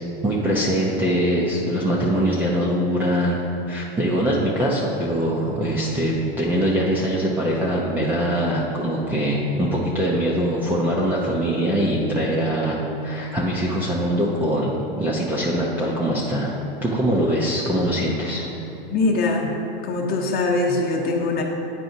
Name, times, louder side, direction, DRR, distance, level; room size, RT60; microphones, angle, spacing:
voice 1, 0.2-18.5, equal, 5° right, -5 dB, 0.4 m, -22 dB
voice 2, 18.9-19.5 19.8-21.4, left 3 dB, 30° left, 1 dB, 0.8 m, -22 dB
9.2 x 4.8 x 2.7 m, 2.8 s
supercardioid pair, 135°, 30 cm